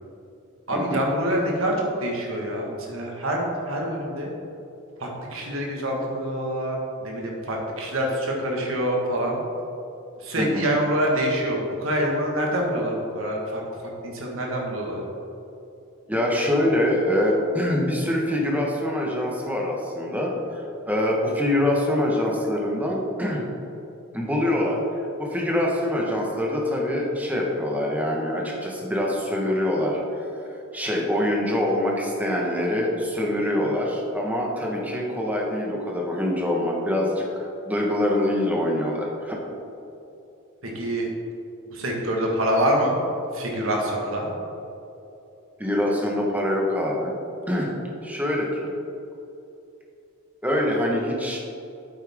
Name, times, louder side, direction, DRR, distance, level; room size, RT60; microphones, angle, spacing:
voice 1, 0.7-4.3 5.0-9.4 10.2-13.6 14.0-15.0 40.6-41.1 41.7-43.0 43.3-44.3, equal, 75° right, -1 dB, 1.8 m, -26 dB
voice 2, 10.4-10.7 16.1-23.4 24.1-24.8 25.2-30.2 30.7-39.4 45.6-47.1 47.5-48.7 50.4-51.4, left 1 dB, 10° right, -2 dB, 1.3 m, -24 dB
8.8 x 8.5 x 3.7 m, 2.8 s
head